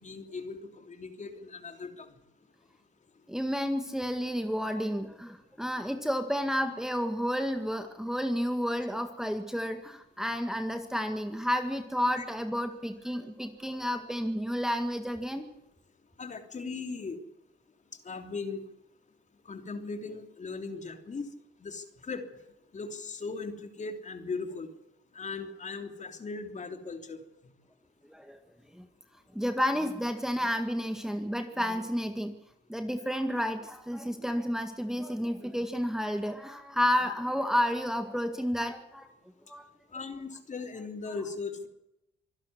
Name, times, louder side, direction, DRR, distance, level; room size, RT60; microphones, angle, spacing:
voice 1, 0.0-2.1 12.2-12.3 16.2-17.2 18.0-18.6 19.4-21.3 21.6-22.2 22.7-24.7 25.1-27.2 39.9-41.7, left 4 dB, 35° left, 6 dB, 3.2 m, -38 dB
voice 2, 3.3-15.5 28.1-28.4 28.7-28.9 29.3-32.3 32.7-39.1 39.5-39.7, equal, ahead, 6 dB, 1.9 m, -31 dB
25.0 x 11.5 x 9.6 m, 0.88 s
cardioid pair, 90°, 20 cm